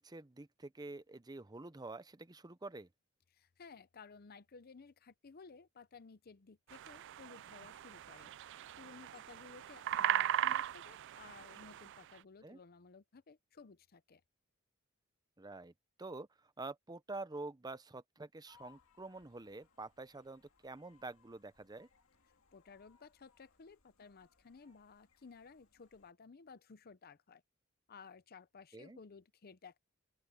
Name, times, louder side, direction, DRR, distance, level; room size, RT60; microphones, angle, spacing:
voice 1, 0.0-2.9 12.4-12.6 15.4-15.7 16.0-16.3 16.6-21.9 28.7-29.0, right 2 dB, 20° right, 0.7 m, -47 dB
voice 2, 3.3-8.3 8.8-14.2 22.5-27.4 27.9-29.8, left 5 dB, 45° left, 0.6 m, -57 dB
sound 1, 6.7-12.0, right 11 dB, 60° right, 0.4 m, -38 dB
sound 2, 18.5-26.1, left 6 dB, 80° left, 2.2 m, -70 dB
open air
head